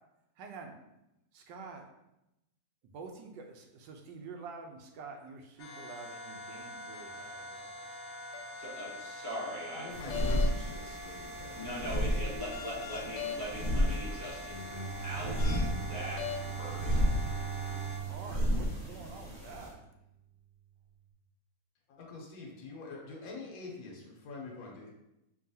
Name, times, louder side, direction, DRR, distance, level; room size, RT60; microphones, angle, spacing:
voice 1, 0.4-0.7 1.3-1.8 2.9-7.7 18.1-19.8, right 4 dB, 90° right, 3 dB, 1.3 m, -47 dB
sound 1, 5.6-18.0, left 3 dB, 80° left, 1.2 m, -43 dB
voice 2, 8.6-10.2 11.5-14.5 15.0-16.3 16.6-17.0, equal, 15° left, -7 dB, 0.6 m, -41 dB
voice 3, 9.7-11.6 21.9-24.9, left 4 dB, 60° left, -1 dB, 1.3 m, -45 dB
sound 2, 9.9-19.7, equal, 20° right, 1.5 m, -33 dB
Bowed string instrument, 14.5-19.7, right 8 dB, 70° right, 1.7 m, -41 dB
4.7 x 3.0 x 2.7 m, 0.89 s
omnidirectional pair, 1.9 m